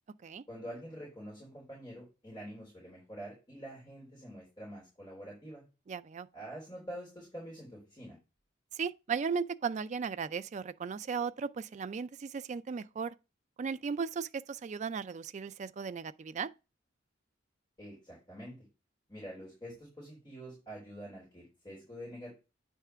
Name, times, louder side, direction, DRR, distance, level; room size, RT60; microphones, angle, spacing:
voice 1, 0.5-5.6 6.3-8.2 17.8-18.6 19.1-22.3, equal, 20° left, 3.7 m, -46 dB
voice 2, 5.9-6.3 8.7-13.1 13.6-16.5, right 6 dB, 35° right, 0.3 m, -36 dB
9.0 x 3.6 x 5.6 m
head